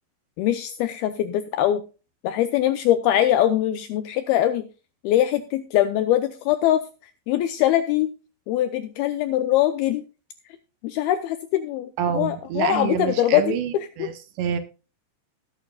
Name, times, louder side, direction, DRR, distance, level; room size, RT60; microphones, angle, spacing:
voice 1, 0.4-1.8 2.2-4.6 5.0-6.8 7.3-8.1 8.5-10.0 10.8-11.9 12.2-14.1, left 12 dB, 85° left, 9 dB, 2.2 m, -22 dB
voice 2, 12.0-14.6, right 8 dB, 75° right, 9 dB, 3.1 m, -27 dB
20.0 x 9.2 x 2.3 m, 0.32 s
omnidirectional pair, 5.2 m